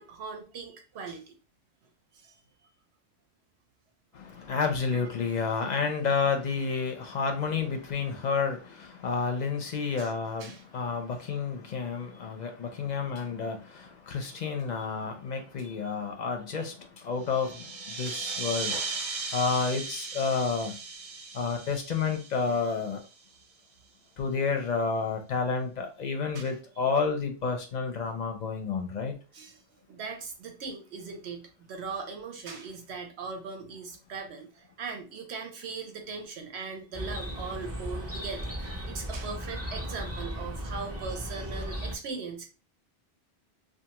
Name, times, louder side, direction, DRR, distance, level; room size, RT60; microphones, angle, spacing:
voice 1, 0.0-1.4 2.1-2.4 4.9-5.1 10.0-10.1 10.4-10.6 14.8-14.9 15.6-15.8 16.6-16.7 18.1-18.6 26.3-26.4 29.3-42.5, right 4 dB, 85° right, 1.0 m, -40 dB
voice 2, 4.1-18.8 19.3-20.8 21.3-23.0 24.2-29.1, left 5 dB, 55° left, 0.6 m, -30 dB
sound 1, 17.2-23.4, right 4 dB, 55° right, 0.7 m, -37 dB
Chirp tweet, 36.9-42.0, equal, 20° right, 0.5 m, -36 dB
2.5 x 2.4 x 2.8 m
omnidirectional pair, 1.1 m